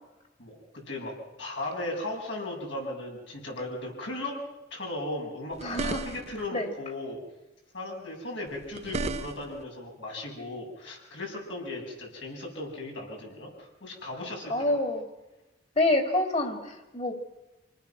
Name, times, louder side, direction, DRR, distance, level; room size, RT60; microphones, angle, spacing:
voice 1, 0.4-4.4 4.7-7.2 7.7-14.8, left 1 dB, 75° left, -1 dB, 7.5 m, -37 dB
sound 1, 5.5-6.5 8.5-9.6, right 3 dB, 35° right, 0.8 m, -34 dB
voice 2, 5.6-6.0 6.5-6.7 14.5-15.0 15.8-17.1, left 2 dB, 35° left, 5 dB, 3.0 m, -27 dB
27.0 x 19.5 x 6.1 m, 1.0 s
head